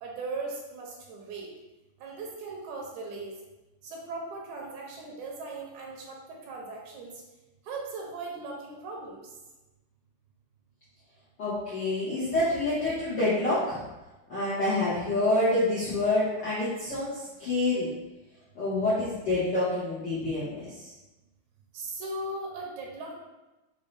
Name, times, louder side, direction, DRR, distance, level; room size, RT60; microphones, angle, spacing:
voice 1, 0.0-1.5 2.0-3.3 3.8-7.1 7.7-9.2 21.7-23.1, right 3 dB, 80° right, -1 dB, 2.0 m, -38 dB
voice 2, 11.4-13.8 14.3-17.9 18.5-20.9, left 2 dB, 60° left, -11 dB, 1.2 m, -27 dB
5.3 x 2.8 x 3.3 m, 1.1 s
omnidirectional pair, 3.5 m